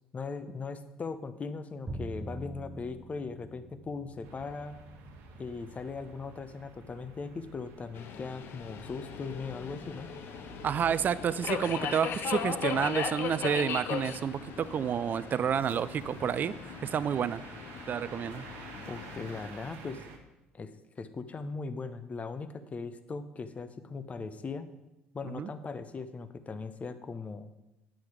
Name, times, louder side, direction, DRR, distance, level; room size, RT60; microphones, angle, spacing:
voice 1, 0.1-4.8 5.4-10.1 18.9-20.0 20.5-24.7 25.1-27.5, left 4 dB, 30° left, 11 dB, 0.8 m, -39 dB
Bowed string instrument, 1.9-8.0, right 1 dB, 15° right, 0.9 m, -46 dB
sound 1, 4.2-20.2, right 4 dB, 75° right, 1.4 m, -51 dB
Subway metro underground, 8.0-19.5, left 7 dB, 60° left, 0.8 m, -38 dB
voice 2, 10.6-16.5 16.8-17.4 17.9-18.4 25.2-25.5, right 8 dB, 45° right, 16 dB, 0.4 m, -30 dB
8.5 x 6.3 x 4.9 m, 0.95 s
hypercardioid pair, 70°, 4 cm